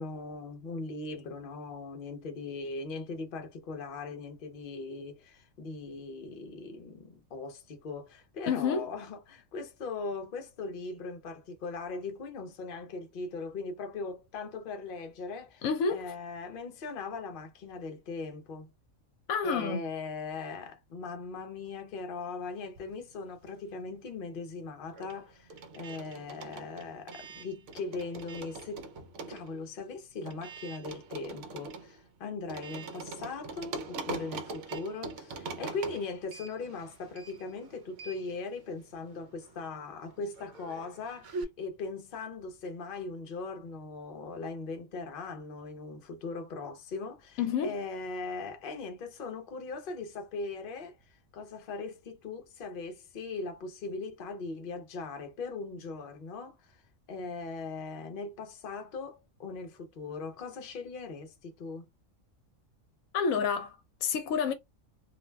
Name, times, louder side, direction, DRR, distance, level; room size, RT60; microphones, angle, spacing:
voice 1, 0.0-18.7 19.4-28.8 29.3-61.9, left 3 dB, 50° left, 0.7 m, -39 dB
voice 2, 8.5-8.9 15.6-16.1 19.3-19.8 47.4-47.8 63.1-64.5, left 6 dB, 80° left, 1.0 m, -29 dB
sound 1, 22.6-23.9 24.1-41.4, right 3 dB, 65° right, 0.8 m, -43 dB
2.5 x 2.1 x 3.2 m
omnidirectional pair, 1.5 m